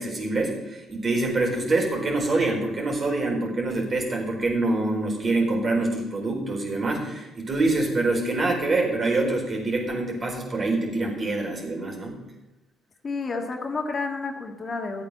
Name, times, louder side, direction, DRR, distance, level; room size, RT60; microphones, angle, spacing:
voice 1, 0.0-12.2, right 2 dB, 40° right, 0 dB, 4.4 m, -25 dB
voice 2, 13.0-15.0, left 4 dB, 40° left, 3 dB, 1.8 m, -30 dB
12.5 x 8.4 x 6.7 m, 1.0 s
supercardioid pair, 60°, 0 cm